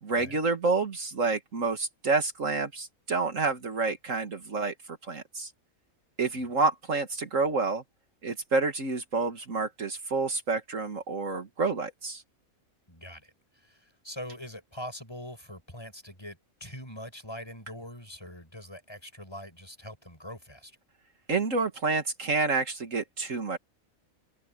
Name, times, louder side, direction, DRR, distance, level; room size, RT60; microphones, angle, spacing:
voice 1, 0.0-5.5 6.2-7.8 8.2-12.2 21.3-23.6, right 3 dB, 65° right, 2.3 m, -29 dB
voice 2, 12.9-20.8, equal, 20° left, 7.3 m, -43 dB
omnidirectional pair, 1.5 m